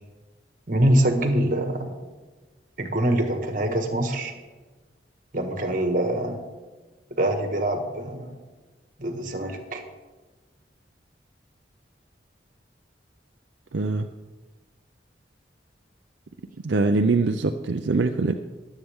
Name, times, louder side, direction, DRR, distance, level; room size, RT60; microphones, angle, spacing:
voice 1, 0.7-2.0 2.8-4.3 5.3-6.4 7.2-8.4 9.0-9.8, right 1 dB, 45° right, 5 dB, 1.6 m, -24 dB
voice 2, 13.7-14.1 16.6-18.4, right 3 dB, 80° right, 6 dB, 0.6 m, -23 dB
22.5 x 8.3 x 3.6 m, 1.3 s
head